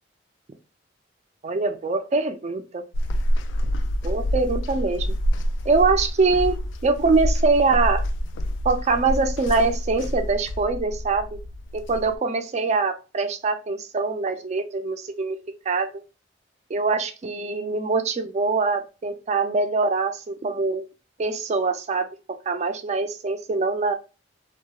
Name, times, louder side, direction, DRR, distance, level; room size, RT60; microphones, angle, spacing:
voice 1, 1.4-2.8 4.0-5.1 5.7-6.6 6.8-8.0 8.6-11.4 11.7-15.4 15.7-15.9 16.7-20.8 21.2-22.1 22.5-23.9, right 4 dB, 40° right, 0.4 m, -23 dB
sound 1, 2.9-12.2, equal, 85° left, 0.3 m, -27 dB
2.8 x 2.2 x 2.2 m
head